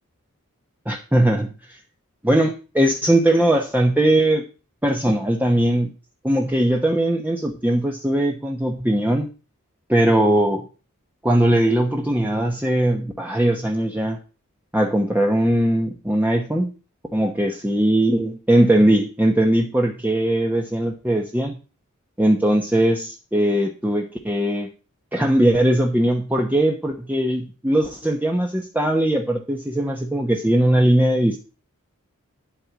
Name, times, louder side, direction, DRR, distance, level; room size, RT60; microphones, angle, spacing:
voice 1, 0.9-1.8 2.2-4.4 4.8-5.9 6.2-9.3 9.9-10.7 11.2-14.2 14.7-16.7 17.1-21.6 22.2-24.7 25.1-31.4, right 1 dB, 10° right, 1 dB, 1.1 m, -20 dB
11.5 x 4.5 x 8.3 m, 0.34 s
head